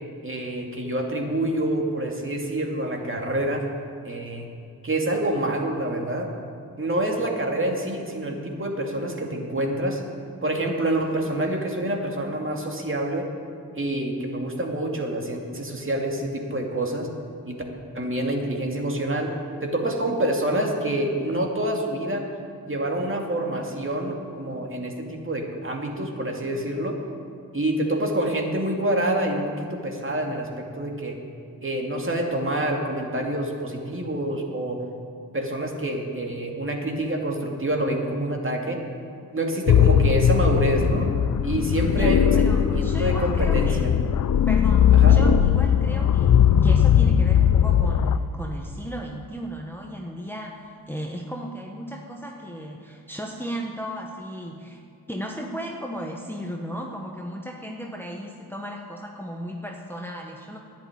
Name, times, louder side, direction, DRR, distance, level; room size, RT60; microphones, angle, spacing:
voice 1, 0.2-3.6 4.0-4.5 4.8-6.3 6.8-10.0 10.4-13.3 13.7-17.1 17.5-17.6 17.9-19.3 19.6-22.3 22.6-27.0 27.5-30.5 30.7-31.2 31.6-34.8 35.3-38.8 39.3-41.1 41.4-43.9 45.0-45.2, right 1 dB, 30° right, 1 dB, 2.4 m, -27 dB
sound 1, 39.7-48.2, left 8 dB, 50° left, 0.6 m, -19 dB
voice 2, 42.0-43.9 44.5-54.8 55.1-60.6, equal, 5° left, 0 dB, 1.3 m, -35 dB
10.5 x 9.0 x 8.9 m, 2.4 s
supercardioid pair, 50°, 41 cm